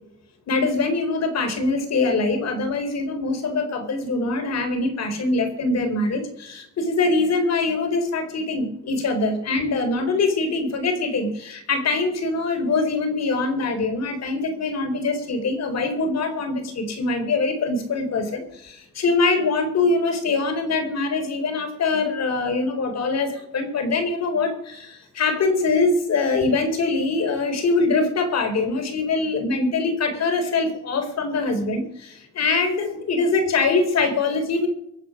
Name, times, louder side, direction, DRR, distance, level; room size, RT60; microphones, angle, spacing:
voice 1, 0.5-34.7, left 3 dB, 60° left, 6 dB, 4.3 m, -23 dB
23.5 x 8.2 x 5.1 m, 0.75 s
cardioid pair, 90°, 30 cm